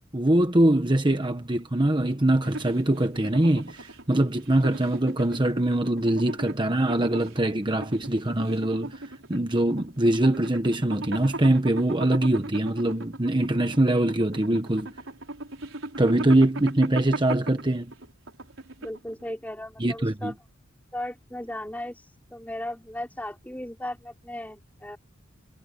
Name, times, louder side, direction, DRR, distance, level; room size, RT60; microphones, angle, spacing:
voice 1, 0.1-9.0 9.3-14.9 16.0-17.9 19.8-20.3, right 1 dB, 25° right, 1.2 m, -23 dB
sound 1, 2.4-19.2, right 2 dB, 90° right, 4.6 m, -38 dB
voice 2, 18.8-20.3 20.9-25.0, left 1 dB, 10° left, 4.9 m, -36 dB
head